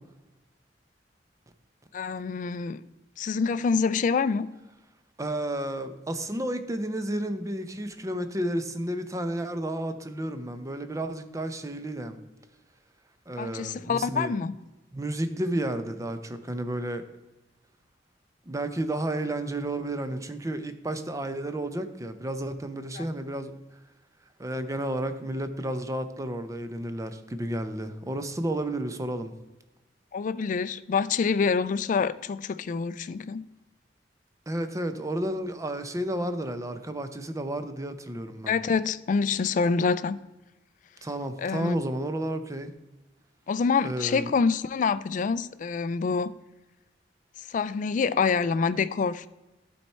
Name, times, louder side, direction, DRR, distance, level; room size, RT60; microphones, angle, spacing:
voice 1, 1.9-2.8 3.2-4.5 13.4-14.5 23.0-23.1 30.1-33.5 38.5-40.2 41.4-41.8 43.5-46.3 47.4-49.3, left 5 dB, 45° left, 0.3 m, -26 dB
voice 2, 5.2-12.2 13.3-14.4 14.9-17.0 18.5-23.6 24.4-29.3 34.5-38.5 41.0-42.7 43.8-44.3, right 1 dB, 20° right, 0.6 m, -32 dB
11.5 x 4.3 x 4.4 m
head